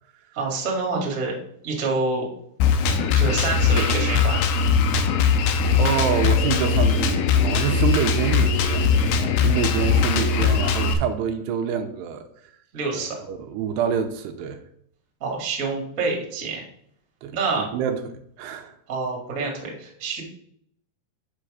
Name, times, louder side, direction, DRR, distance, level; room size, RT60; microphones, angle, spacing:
voice 1, 0.3-1.4 1.6-2.3 3.1-4.4 12.7-13.1 15.2-16.6 17.3-17.7 18.9-20.2, right 3 dB, 35° right, 1.4 m, -27 dB
Drum kit, 2.6-10.9, left 5 dB, 85° left, 2.7 m, -20 dB
voice 2, 5.8-9.0 9.4-12.3 12.9-14.6 17.2-18.8, right 8 dB, 85° right, 2.7 m, -27 dB
7.7 x 6.2 x 4.9 m
omnidirectional pair, 4.8 m